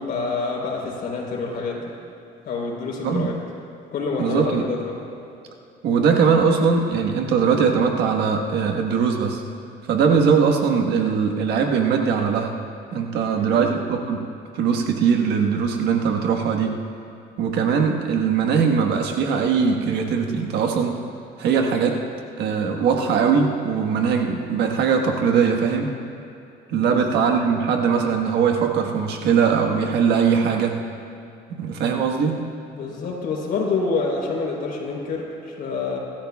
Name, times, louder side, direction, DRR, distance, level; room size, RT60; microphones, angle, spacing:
voice 1, 0.0-1.9 2.4-3.4 3.9-5.0 13.4-13.8 26.8-27.0 32.7-36.0, left 4 dB, 60° left, -1 dB, 4.0 m, -27 dB
voice 2, 4.2-4.6 5.8-9.4 9.9-12.5 12.9-14.2 14.5-16.8 17.4-21.0 21.4-22.0 22.4-25.9 26.7-30.8 31.5-32.4, right 6 dB, 75° right, 3 dB, 1.5 m, -20 dB
28.0 x 13.5 x 2.4 m, 2.6 s
cardioid pair, 110°, 17 cm